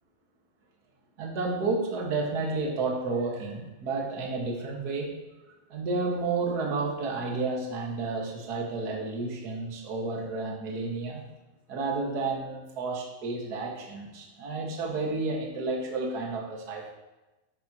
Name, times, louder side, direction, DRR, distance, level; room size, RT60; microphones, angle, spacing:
voice 1, 1.2-5.1 5.7-11.2 11.7-16.9, right 3 dB, 40° right, -1 dB, 1.5 m, -31 dB
12.5 x 11.0 x 3.1 m, 1.1 s
omnidirectional pair, 4.1 m